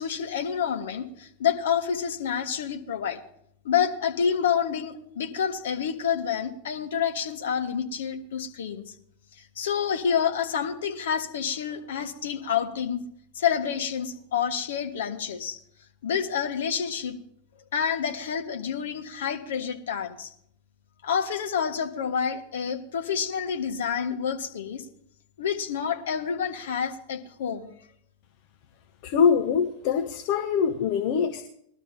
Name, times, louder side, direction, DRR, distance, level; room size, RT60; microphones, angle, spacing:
voice 1, 0.0-3.2 3.6-8.9 9.6-13.0 13.3-15.6 16.0-17.2 17.7-20.3 21.0-24.8 25.4-27.7, left 7 dB, 60° left, 5 dB, 1.5 m, -28 dB
voice 2, 29.0-31.4, left 7 dB, 45° left, 5 dB, 0.9 m, -23 dB
20.5 x 12.5 x 2.8 m, 0.68 s
figure-of-eight pair, 90°, 0 cm